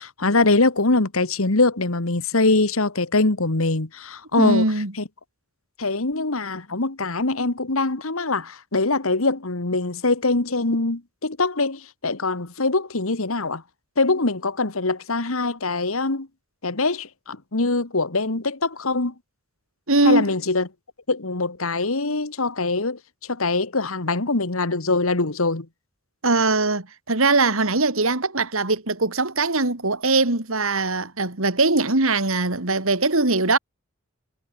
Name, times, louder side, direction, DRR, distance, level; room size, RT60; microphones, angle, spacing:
voice 1, 0.0-4.7 5.0-5.1 5.8-13.6 14.0-16.3 16.6-19.1 20.0-20.7 21.1-23.0 23.3-25.7, left 3 dB, 70° left, 1.8 m, -23 dB
voice 2, 4.4-4.9 19.9-20.2 26.2-33.6, right 3 dB, 65° right, 2.9 m, -21 dB
head